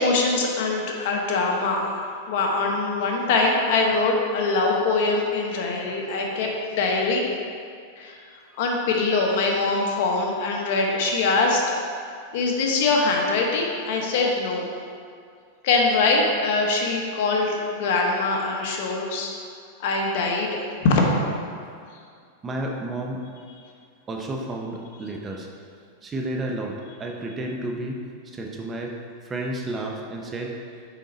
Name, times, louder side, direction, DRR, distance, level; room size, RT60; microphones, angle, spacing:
voice 1, 0.0-7.3 8.0-8.2 8.6-11.6 12.3-14.7 15.6-19.3 19.8-21.2, left 3 dB, 60° left, 0 dB, 1.1 m, -23 dB
voice 2, 22.4-23.2 24.1-25.5 26.0-29.0 29.2-30.6, right 1 dB, 20° right, 1 dB, 0.6 m, -31 dB
6.3 x 5.3 x 3.9 m, 2.3 s
supercardioid pair, 145°, 0 cm